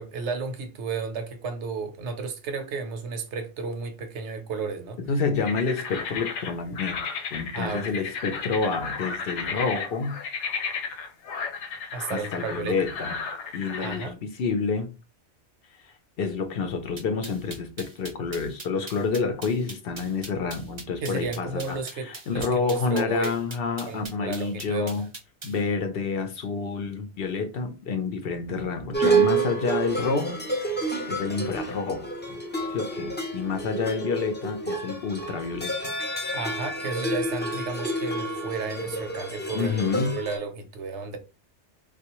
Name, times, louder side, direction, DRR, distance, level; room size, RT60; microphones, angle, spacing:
voice 1, 0.0-5.0 7.5-8.1 11.9-12.8 13.8-14.2 21.0-23.4 23.9-25.0 36.3-41.2, right 4 dB, 80° right, 1.0 m, -33 dB
voice 2, 5.1-7.0 7.3-10.2 12.1-13.2 13.5-14.9 16.2-25.0 25.4-30.4 30.6-32.1 32.7-35.9 39.5-40.2, left 4 dB, 65° left, 0.7 m, -28 dB
sound 1, 5.4-14.1, left 5 dB, 85° left, 0.9 m, -34 dB
sound 2, 17.0-25.6, right 3 dB, 35° right, 0.5 m, -41 dB
sound 3, 28.9-40.4, right 3 dB, 15° left, 0.3 m, -29 dB
3.5 x 2.4 x 2.9 m
omnidirectional pair, 1.2 m